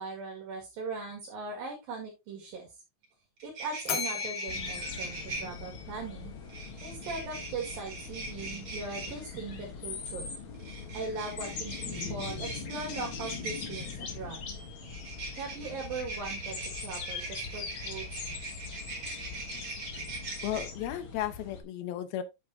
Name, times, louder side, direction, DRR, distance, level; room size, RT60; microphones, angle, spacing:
voice 1, 0.0-2.8 3.4-6.3 6.8-10.4 10.9-14.4 15.4-18.1, right 4 dB, 75° right, 3.7 m, -40 dB
sound 1, 3.0-3.1 3.4-5.4 6.5-9.1 10.5-13.9 14.9-20.7, right 3 dB, 35° right, 2.5 m, -41 dB
Bell, 3.9-6.2, left 6 dB, 60° left, 2.4 m, -37 dB
sound 2, 4.5-21.6, left 5 dB, 45° left, 1.9 m, -41 dB
voice 2, 20.4-22.2, left 11 dB, 90° left, 2.9 m, -34 dB
8.7 x 8.5 x 2.7 m
omnidirectional pair, 4.2 m